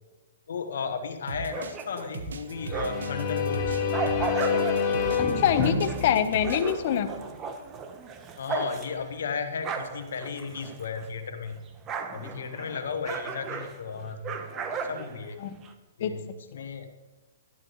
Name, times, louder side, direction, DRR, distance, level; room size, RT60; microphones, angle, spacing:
voice 1, 0.5-3.8 8.4-11.6 12.1-15.4 16.0-16.2 16.5-16.9, left 5 dB, 70° left, 6 dB, 1.3 m, -34 dB
sound 1, 1.3-6.7, right 5 dB, 80° right, 1.1 m, -38 dB
sound 2, 1.4-3.2 3.6-11.2 11.5-15.7, right 5 dB, 25° right, 1.0 m, -36 dB
sound 3, 2.5-7.2, left 5 dB, 25° left, 1.9 m, -28 dB
voice 2, 5.2-7.1 15.4-15.6 16.0-16.1 16.5-16.6, left 9 dB, 50° left, 10 dB, 1.0 m, -25 dB
11.5 x 11.5 x 3.1 m, 1.2 s
hypercardioid pair, 135°, 0 cm